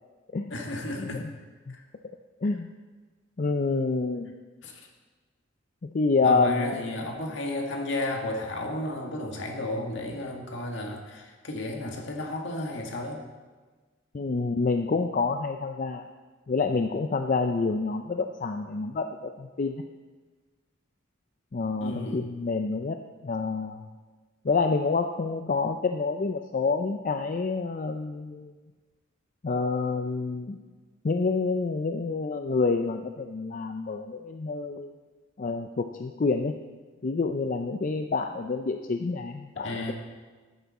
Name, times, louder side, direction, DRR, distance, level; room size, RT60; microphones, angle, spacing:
voice 1, 0.5-1.2 1.7-1.8 4.6-4.9 6.2-13.2 21.8-22.2 39.6-39.9, left 1 dB, 65° left, 1 dB, 1.8 m, -33 dB
voice 2, 3.4-4.3 5.9-6.7 14.1-16.0 16.5-19.8 21.5-23.0 23.2-23.8 24.4-28.5 29.4-30.6 31.0-34.9 35.4-36.5 37.0-39.9, left 4 dB, 40° left, 6 dB, 0.4 m, -27 dB
13.5 x 9.4 x 4.2 m, 1.4 s
head